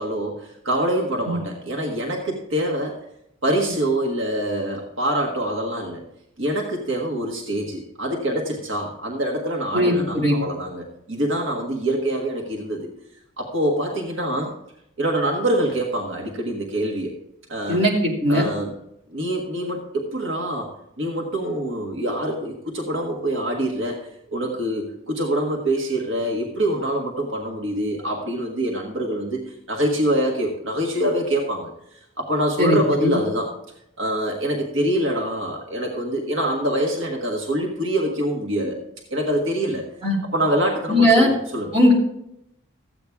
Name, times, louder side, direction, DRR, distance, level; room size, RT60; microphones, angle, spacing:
voice 1, 0.0-3.0 3.4-6.0 6.4-12.9 13.4-14.5 15.0-17.1 17.5-17.8 18.3-18.7 19.1-20.7 21.0-29.4 29.7-33.5 34.0-38.8 39.1-39.9 40.3-41.7, right 1 dB, 65° right, 0 dB, 1.6 m, -25 dB
voice 2, 9.7-10.3 17.7-18.5 32.6-33.1 40.0-40.2 40.9-41.3 41.7-41.9, left 1 dB, 30° right, -4 dB, 2.8 m, -18 dB
14.0 x 8.4 x 3.6 m, 0.78 s
head